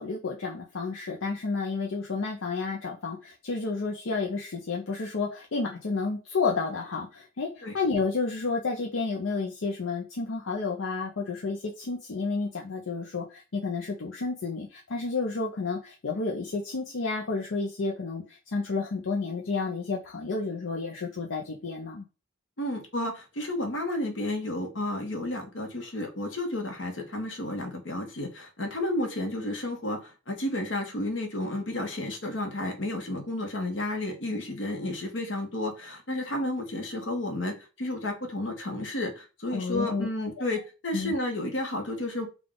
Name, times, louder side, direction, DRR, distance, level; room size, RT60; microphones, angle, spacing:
voice 1, 0.0-22.0 39.5-40.6 40.9-41.1, left 4 dB, 85° left, -1 dB, 0.6 m, -31 dB
voice 2, 22.6-42.3, left 1 dB, 70° left, 3 dB, 1.1 m, -32 dB
3.6 x 2.4 x 3.7 m, 0.31 s
head